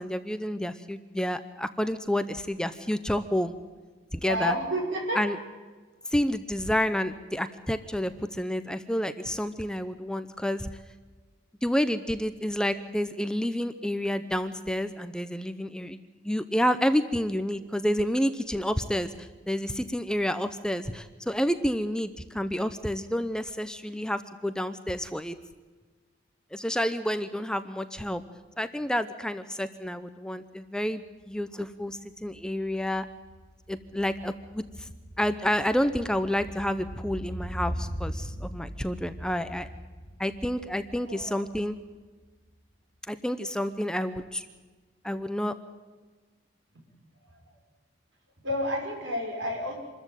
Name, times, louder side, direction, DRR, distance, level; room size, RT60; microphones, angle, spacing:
voice 1, 0.0-3.6 4.1-4.5 5.1-5.4 6.1-10.7 11.6-25.3 26.5-28.2 28.6-33.0 33.7-34.9 35.2-39.7 40.2-41.8 43.1-44.5 45.0-45.5, equal, 5° left, 11 dB, 0.7 m, -29 dB
voice 2, 4.2-5.2 41.1-41.4 48.4-49.8, equal, 70° right, 2 dB, 6.0 m, -30 dB
sound 1, 31.2-31.3 31.6-41.9 42.2-42.3, equal, 70° left, 4.1 m, -40 dB
26.0 x 14.0 x 9.1 m, 1.4 s
head